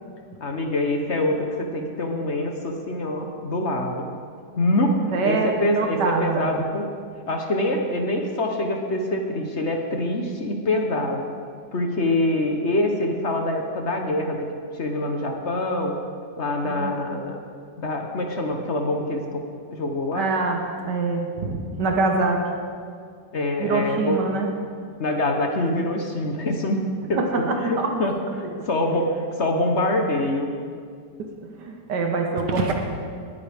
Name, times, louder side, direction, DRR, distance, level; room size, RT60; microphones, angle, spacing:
voice 1, 0.4-4.1 4.6-6.9 7.3-11.3 11.7-14.5 14.7-16.0 16.4-17.4 17.8-19.4 19.7-20.3 23.3-24.2 25.0-26.8 27.1-27.2 27.6-30.5, left 1 dB, 45° left, 3 dB, 1.1 m, -25 dB
voice 2, 5.1-6.5 16.6-17.0 20.1-22.4 23.6-24.5 27.1-27.9 28.4-28.7 31.2-31.3 31.6-32.7, right 3 dB, 75° right, 2 dB, 1.6 m, -25 dB
20.0 x 9.4 x 3.5 m, 2.2 s
omnidirectional pair, 1.9 m